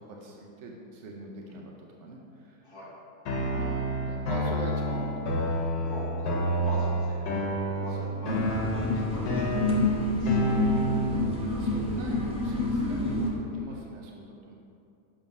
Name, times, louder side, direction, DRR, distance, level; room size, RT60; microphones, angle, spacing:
voice 1, 0.0-2.6 3.3-5.5 7.8-8.6 10.9-11.2 11.6-14.5, right 2 dB, 60° right, -1 dB, 0.8 m, -42 dB
voice 2, 2.6-3.0 5.8-10.4 13.7-13.8, left 1 dB, 20° left, -9 dB, 1.0 m, -42 dB
sound 1, 3.3-11.3, right 1 dB, 85° left, 1.5 m, -29 dB
sound 2, 8.2-13.3, left 2 dB, 5° right, 0.5 m, -28 dB
6.9 x 3.8 x 5.3 m, 2.6 s
omnidirectional pair, 1.8 m